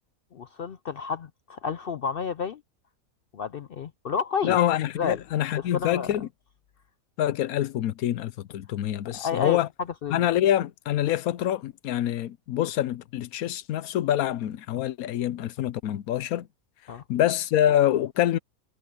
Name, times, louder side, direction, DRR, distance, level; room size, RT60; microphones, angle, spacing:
voice 1, 0.3-2.6 3.3-4.6 5.0-5.2 5.6-6.2 9.1-9.6 10.0-10.3 16.9-17.0, left 6 dB, 60° left, 0.6 m, -30 dB
voice 2, 4.4-6.3 7.2-9.7 10.1-16.5 17.1-18.4, left 12 dB, 80° left, 1.2 m, -25 dB
omnidirectional pair, 1.5 m